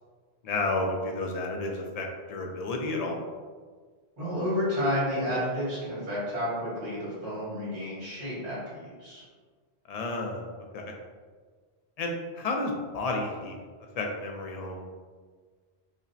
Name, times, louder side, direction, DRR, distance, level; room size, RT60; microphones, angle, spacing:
voice 1, 0.4-3.2 9.9-10.5 10.7-10.9 12.0-13.5 14.0-14.8, left 2 dB, 55° left, 1 dB, 0.4 m, -31 dB
voice 2, 4.2-9.2, equal, 80° right, -8 dB, 1.9 m, -31 dB
5.0 x 2.1 x 2.6 m, 1.5 s
omnidirectional pair, 1.1 m